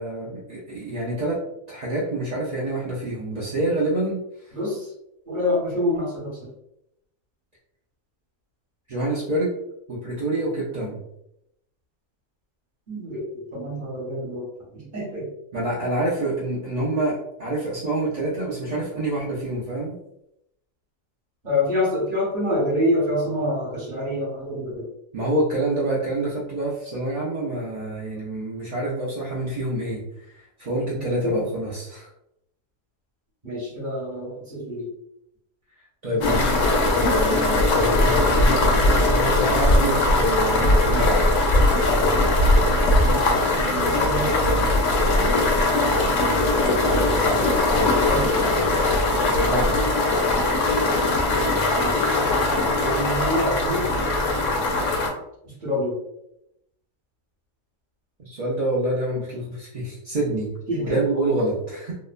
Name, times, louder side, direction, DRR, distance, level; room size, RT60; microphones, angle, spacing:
voice 1, 0.0-1.4 1.7-4.2 4.4-4.5 8.9-9.5 9.9-11.0 15.5-19.9 25.1-30.0 30.3-32.1 36.0-41.3 49.2-49.9 58.2-60.5 60.8-62.0, right 1 dB, 55° right, -7 dB, 0.4 m, -27 dB
voice 2, 4.5-4.9 5.3-6.5 12.9-14.5 14.7-15.3 21.4-24.9 30.8-31.5 33.4-34.9 36.1-36.6 43.0-44.5 45.9-47.5 47.8-48.4 51.7-52.2 52.8-53.9 55.4-56.0 60.7-61.0, left 1 dB, 40° right, -5 dB, 1.0 m, -27 dB
sound 1, 36.2-55.1, left 2 dB, 70° left, 0.9 m, -20 dB
2.8 x 2.1 x 2.4 m, 0.80 s
omnidirectional pair, 1.4 m